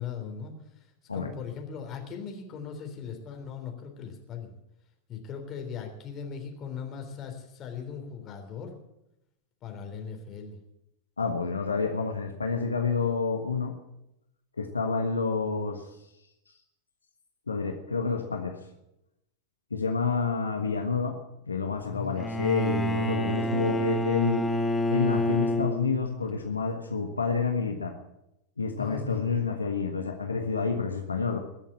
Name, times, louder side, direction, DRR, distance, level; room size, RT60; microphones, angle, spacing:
voice 1, 0.0-4.6 5.1-8.8 9.6-10.6 21.9-22.1 28.8-29.4, left 7 dB, 30° left, 3 dB, 3.6 m, -39 dB
voice 2, 11.2-13.7 14.6-15.9 17.5-18.6 19.7-21.2 21.5-24.5 24.9-28.0 28.6-31.4, left 5 dB, 75° left, 4 dB, 1.4 m, -29 dB
Bowed string instrument, 22.2-26.3, equal, 10° left, 1.4 m, -28 dB
21.5 x 7.3 x 8.8 m, 0.86 s
figure-of-eight pair, 90°, 0 cm